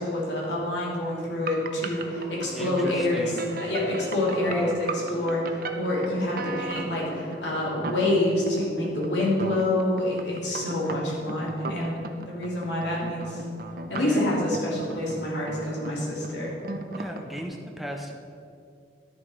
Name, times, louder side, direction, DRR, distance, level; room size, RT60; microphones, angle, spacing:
voice 1, 0.0-12.0 12.3-13.4 13.9-16.5, left 1 dB, 80° left, -4 dB, 2.8 m, -27 dB
sound 1, 1.5-17.4, right 3 dB, 50° right, 0.7 m, -38 dB
sound 2, 1.9-8.0, left 1 dB, 60° left, 2.1 m, -42 dB
voice 2, 2.5-3.5 4.4-4.8 13.9-14.2 17.0-18.1, right 1 dB, ahead, 1 dB, 0.7 m, -35 dB
11.0 x 6.9 x 4.8 m, 2.3 s
head